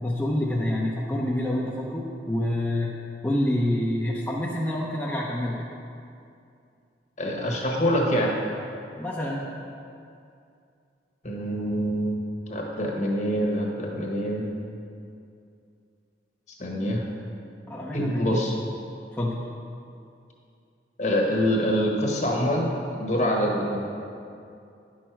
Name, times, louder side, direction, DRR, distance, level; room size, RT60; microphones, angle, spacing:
voice 1, 0.0-2.9 3.2-5.7 9.0-9.4 17.7-18.4 19.1-19.4, left 1 dB, 10° left, -5 dB, 0.6 m, -27 dB
voice 2, 7.2-8.4 11.2-12.2 12.5-14.5 16.6-17.0 17.9-18.5 21.0-23.8, equal, 40° left, -1 dB, 1.3 m, -25 dB
9.8 x 6.3 x 4.5 m, 2.5 s
head